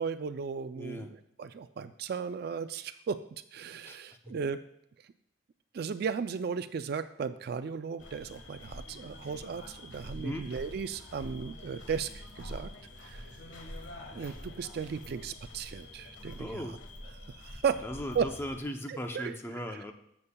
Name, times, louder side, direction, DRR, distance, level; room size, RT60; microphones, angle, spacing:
voice 1, 0.0-3.2 3.5-4.6 5.7-12.7 13.0-13.2 14.1-16.8 17.2-17.8 18.1-18.3 18.9-19.6, right 6 dB, 50° right, 11 dB, 0.3 m, -35 dB
voice 2, 0.8-1.1 3.8-4.3 10.1-10.4 16.4-16.7 17.8-19.9, equal, 10° left, 5 dB, 0.6 m, -38 dB
sound 1, 8.0-18.6, left 1 dB, 65° left, 1.4 m, -46 dB
13.0 x 7.2 x 2.3 m, 0.76 s
head